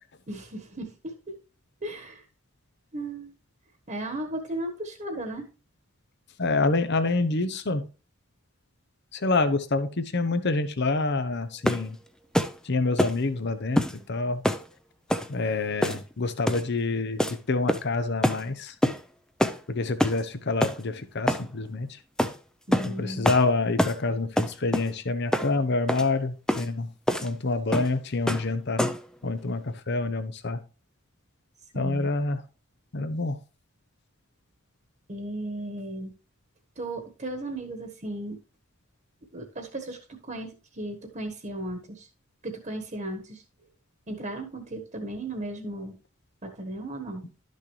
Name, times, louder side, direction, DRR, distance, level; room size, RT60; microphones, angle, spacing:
voice 1, 0.3-1.4 1.8-2.2 2.9-3.3 3.9-5.5 22.7-23.2 31.7-32.1 35.1-36.1 36.8-38.4 39.3-42.1 42.4-43.4 44.1-46.0 46.4-47.2, right 1 dB, 35° right, 4 dB, 1.3 m, -35 dB
voice 2, 6.4-7.9 9.1-12.0 12.6-14.4 15.3-18.7 19.7-22.0 22.8-26.9 27.2-28.9 29.2-30.6 31.7-32.4 32.9-33.4, left 3 dB, 55° left, 11 dB, 0.8 m, -27 dB
sound 1, 11.6-11.9 12.3-12.6 13.0-13.2 13.8-14.0 14.4-14.7 15.1-15.3 15.8-16.1 16.5-16.7 17.2-17.4 17.7-17.9 18.2-18.4 18.8-19.0 19.4-19.6 20.0-20.2 20.6-20.8 21.3-21.5 22.2-22.3 22.7-22.9 23.2-23.4 23.8-24.0 24.4-24.9 25.3-25.5 25.9-26.1 26.5-26.7 27.1-27.3 27.7-27.9 28.3-28.5 28.8-29.1, equal, 5° left, 0.5 m, -25 dB
12.0 x 6.4 x 3.2 m, 0.34 s
head